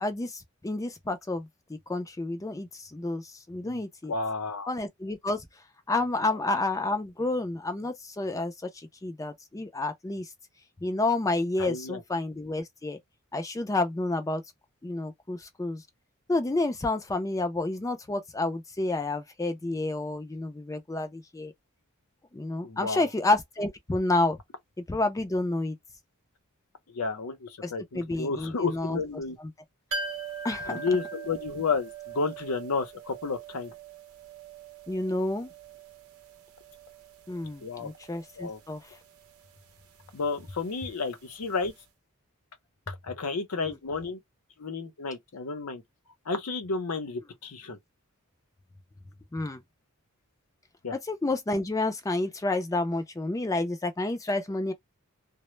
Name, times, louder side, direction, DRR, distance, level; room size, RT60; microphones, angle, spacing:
voice 1, 0.0-4.1 4.7-5.5 5.9-10.3 10.8-13.0 13.3-14.4 14.8-15.8 16.3-21.5 22.3-24.4 24.9-25.8 27.6-29.0 30.4-30.8 34.9-35.5 37.3-38.8 43.6-43.7 49.3-49.6 51.1-54.7, left 2 dB, 15° left, 0.4 m, -30 dB
voice 2, 3.6-4.7 6.3-6.4 11.6-12.0 22.6-23.1 26.9-29.4 30.7-33.7 37.6-37.9 38.4-38.6 40.1-41.7 42.9-44.2 44.6-45.8 46.3-47.8 50.8-51.0, left 4 dB, 85° left, 0.7 m, -32 dB
sound 1, 29.9-41.5 41.8-41.9, right 4 dB, 75° right, 0.6 m, -42 dB
2.1 x 2.0 x 3.0 m
head